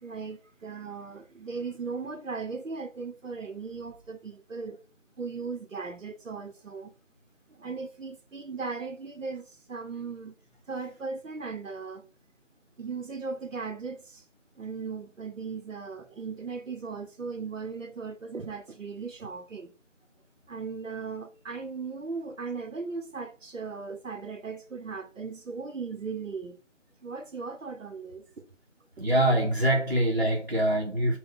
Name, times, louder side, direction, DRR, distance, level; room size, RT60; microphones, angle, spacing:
voice 1, 0.0-4.8 5.2-6.9 7.5-10.4 10.7-12.1 12.8-14.2 14.6-19.7 20.5-26.6 27.0-28.5 29.0-29.1, right 4 dB, 85° right, 0.8 m, -37 dB
voice 2, 29.0-31.2, right 1 dB, 45° right, 0.7 m, -24 dB
3.8 x 2.2 x 3.9 m
figure-of-eight pair, 180°, 37 cm